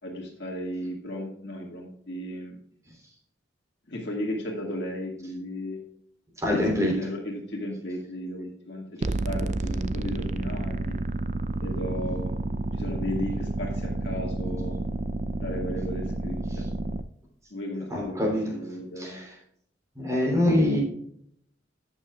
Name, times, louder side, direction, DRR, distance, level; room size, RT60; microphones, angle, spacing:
voice 1, 0.0-2.6 3.9-5.8 6.5-11.0 11.6-12.3 12.7-14.8 15.4-16.7 17.5-19.2, left 1 dB, 65° left, -1 dB, 2.0 m, -35 dB
voice 2, 6.4-7.0 17.9-18.5 19.0-19.3 19.9-20.8, left 1 dB, 15° right, -1 dB, 3.3 m, -24 dB
sound 1, 9.0-17.0, right 2 dB, 40° right, 0.5 m, -30 dB
13.0 x 8.6 x 2.4 m, 0.70 s
head